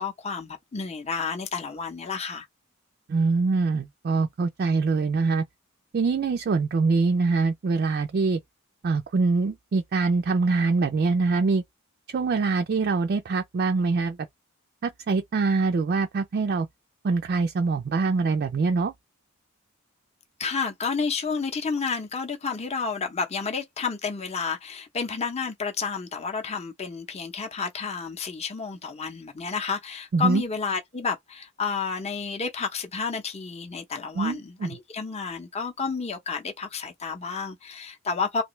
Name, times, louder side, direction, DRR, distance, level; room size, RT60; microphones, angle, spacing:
voice 1, 0.0-2.5 20.4-38.4, left 5 dB, 30° left, 0.7 m, -30 dB
voice 2, 3.1-5.4 5.9-8.4 8.8-11.6 12.1-14.2 14.8-16.7 17.0-18.9 30.1-30.4 34.2-34.8, right 4 dB, 45° right, 0.3 m, -24 dB
3.2 x 2.5 x 3.1 m
head